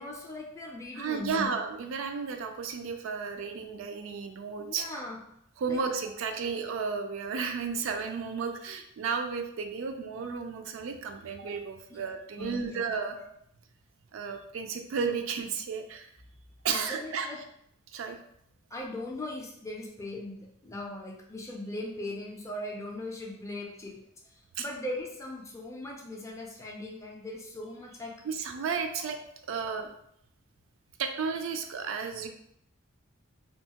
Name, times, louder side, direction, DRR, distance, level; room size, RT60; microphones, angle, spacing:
voice 1, 0.0-1.6 4.6-5.2 5.7-5.8 11.9-12.0 12.4-12.8 13.2-13.3 16.7-17.4 18.7-24.0 24.3-28.1, left 1 dB, 15° left, -1 dB, 0.4 m, -39 dB
voice 2, 1.0-4.9 5.6-13.2 14.1-16.1 16.6-17.3 17.9-18.2 24.6-24.7 28.2-29.2 29.5-29.9 31.0-32.3, right 5 dB, 70° right, 5 dB, 0.3 m, -33 dB
2.8 x 2.3 x 2.8 m, 0.74 s
head